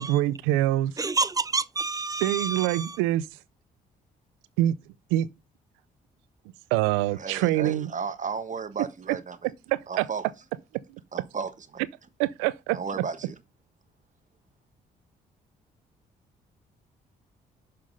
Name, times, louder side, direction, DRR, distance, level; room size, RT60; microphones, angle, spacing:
voice 1, 0.0-0.9 2.2-3.3 4.6-4.8 5.1-5.3 6.7-7.9 9.7-10.1 12.2-12.8, right 15 dB, 85° right, 0.4 m, -25 dB
voice 2, 1.0-3.0, right 3 dB, 15° right, 0.7 m, -29 dB
voice 3, 7.2-9.5 9.9-10.3 11.1-11.8 12.7-13.3, right 5 dB, 40° right, 1.3 m, -34 dB
6.5 x 5.7 x 5.3 m
hypercardioid pair, 50°, 20 cm